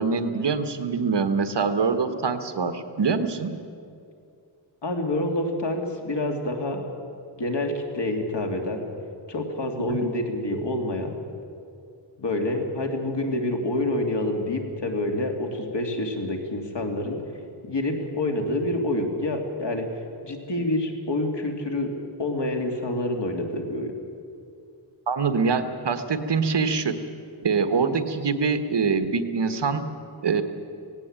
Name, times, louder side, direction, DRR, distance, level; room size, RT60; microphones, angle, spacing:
voice 1, 0.0-3.5 9.9-10.1 25.1-27.0 27.4-29.8 30.2-30.4, right 5 dB, 65° right, 9 dB, 1.4 m, -24 dB
voice 2, 4.8-6.8 7.4-8.8 9.3-11.1 12.2-17.2 17.6-19.9 20.2-21.9 22.2-23.9, left 1 dB, 65° left, 3 dB, 2.8 m, -27 dB
17.5 x 17.5 x 8.9 m, 2.4 s
wide cardioid pair, 105°, 45 cm